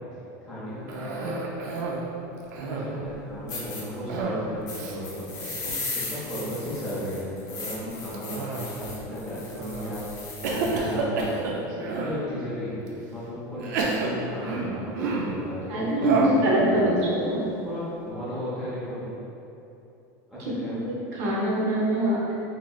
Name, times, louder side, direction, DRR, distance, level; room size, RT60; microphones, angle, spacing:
voice 1, 0.4-1.3 2.5-11.3 11.7-19.2 20.3-20.8, equal, 5° right, -13 dB, 0.5 m, -35 dB
Cough, 0.9-2.1 2.4-3.1 4.1-4.5 4.7-5.0 5.4-5.6 6.2-6.6 8.1-8.9 9.5-9.9 10.4-12.2 12.9-13.0 13.6-15.4 16.0-16.5, right 3 dB, 85° right, 0.4 m, -30 dB
sound 1, 3.1-3.2 3.5-3.8 4.7-10.8, left 3 dB, 80° left, 0.7 m, -37 dB
voice 2, 15.7-17.4 20.7-22.3, right 1 dB, 55° right, -5 dB, 0.8 m, -24 dB
3.0 x 2.7 x 2.3 m, 2.8 s
supercardioid pair, 165°, 9 cm